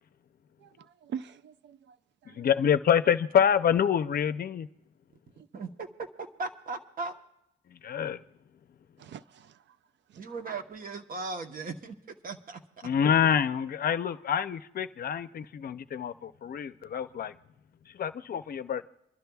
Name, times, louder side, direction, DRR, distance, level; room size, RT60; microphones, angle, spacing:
voice 1, 0.6-2.0 2.2-2.5 9.0-9.6 10.1-10.2, right 8 dB, 70° right, 0.4 m, -43 dB
voice 2, 2.3-4.7 7.7-8.2 12.8-17.3 17.9-18.9, left 8 dB, 50° left, 0.5 m, -27 dB
voice 3, 5.5-5.9 6.2-7.1 10.2-12.0 12.2-12.6, right 3 dB, 50° right, 1.0 m, -37 dB
28.0 x 12.0 x 2.3 m
cardioid pair, 130°, 19 cm